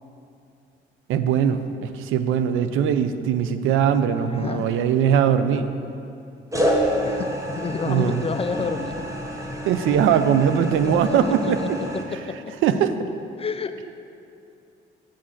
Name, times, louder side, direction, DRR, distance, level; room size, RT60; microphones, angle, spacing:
voice 1, 1.1-5.7 7.9-8.2 9.6-11.6 12.6-12.9, right 8 dB, 85° right, 10 dB, 0.5 m, -21 dB
voice 2, 4.2-4.7 7.0-9.1 10.8-12.5 13.4-13.7, left 5 dB, 30° left, 9 dB, 0.4 m, -30 dB
sound 1, 4.6-5.2 6.5-12.0, equal, 15° right, 1.4 m, -28 dB
7.7 x 6.4 x 7.2 m, 2.6 s
cardioid pair, 90°, 20 cm